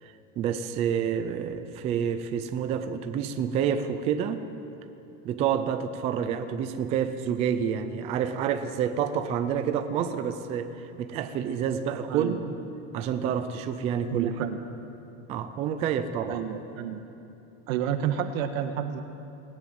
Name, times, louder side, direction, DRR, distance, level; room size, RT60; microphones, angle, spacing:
voice 1, 0.0-4.4 5.2-12.4 12.9-14.3 15.3-16.4, right 8 dB, 15° right, 9 dB, 0.4 m, -28 dB
voice 2, 12.1-12.4 14.1-14.6 16.3-17.0 17.7-19.0, right 9 dB, 75° right, 7 dB, 1.6 m, -30 dB
19.5 x 17.5 x 7.8 m, 2.7 s
supercardioid pair, 175°, 41 cm